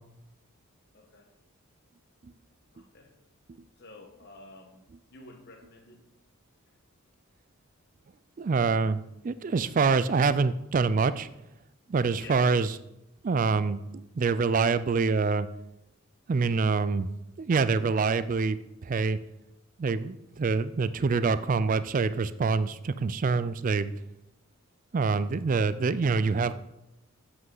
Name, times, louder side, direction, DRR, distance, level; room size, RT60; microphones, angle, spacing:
voice 1, 0.9-1.3 2.7-3.1 3.8-6.0 12.2-12.4, left 2 dB, 50° left, 4 dB, 1.2 m, -50 dB
voice 2, 8.4-11.3 11.9-12.8 13.2-15.5 16.3-17.1 17.4-18.6 18.8-19.2 19.8-23.9 24.9-26.5, right 4 dB, 40° right, 14 dB, 0.3 m, -26 dB
8.1 x 7.8 x 3.9 m, 0.89 s
head